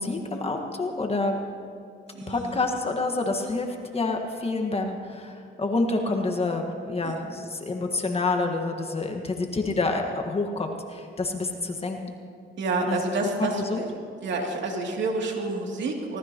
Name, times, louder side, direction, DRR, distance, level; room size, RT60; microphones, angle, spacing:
voice 1, 0.0-1.4 2.3-12.0 12.9-13.0 13.6-13.8, left 3 dB, 30° left, 3 dB, 1.6 m, -28 dB
voice 2, 2.1-2.6 7.0-7.2 9.7-9.8 12.6-13.9 14.2-16.2, right 3 dB, 65° right, 0 dB, 2.8 m, -29 dB
24.5 x 18.5 x 3.0 m, 2.4 s
cardioid pair, 90°, 20 cm